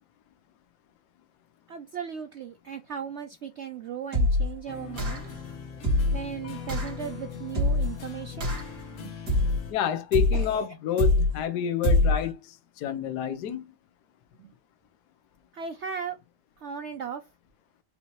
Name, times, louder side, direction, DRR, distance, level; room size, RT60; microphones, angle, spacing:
voice 1, 1.7-5.2 6.1-8.5 9.0-9.1 9.4-9.5 10.3-10.7 14.4-14.5 15.5-16.2 16.6-17.3, right 7 dB, 85° right, 0.6 m, -37 dB
sound 1, 4.1-4.6 5.0-5.4 5.8-6.3 6.7-7.0 7.6-8.0 8.4-8.8 9.3-9.7 10.1-10.5 11.0-11.4 11.8-12.3, left 1 dB, 65° right, 2.4 m, -24 dB
sound 2, 4.7-9.7, left 6 dB, 50° left, 1.1 m, -40 dB
voice 2, 9.7-13.7, left 9 dB, 70° left, 1.3 m, -29 dB
5.4 x 2.8 x 3.0 m
omnidirectional pair, 1.9 m